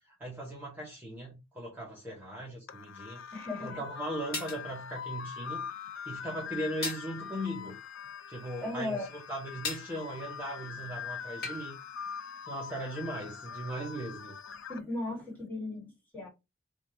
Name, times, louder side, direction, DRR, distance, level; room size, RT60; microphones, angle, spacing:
voice 1, 0.2-3.2 3.6-7.8 8.3-11.8 12.2-14.3, right 1 dB, 10° right, 1.0 m, -39 dB
sound 1, 2.7-14.8, left 7 dB, 80° left, 0.5 m, -43 dB
voice 2, 3.3-3.8 8.6-9.1 14.7-16.3, left 2 dB, 10° left, 1.8 m, -36 dB
sound 2, 4.3-4.6 6.8-7.1 9.6-9.9 11.4-11.7, left 4 dB, 50° left, 1.4 m, -36 dB
3.5 x 2.5 x 4.3 m
head